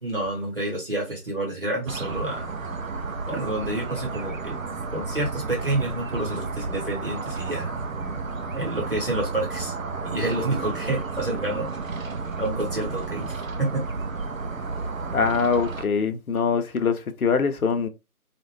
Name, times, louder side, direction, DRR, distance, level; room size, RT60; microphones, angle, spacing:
voice 1, 0.0-2.5 3.3-4.6 4.9-7.7 8.5-9.7 10.0-11.7 12.4-13.8, right 2 dB, 35° right, 1.0 m, -28 dB
sound 1, 1.9-15.8, right 4 dB, 60° right, 0.5 m, -32 dB
voice 2, 15.1-17.9, left 5 dB, 70° left, 0.5 m, -23 dB
2.4 x 2.1 x 3.0 m
figure-of-eight pair, 175°, 45 cm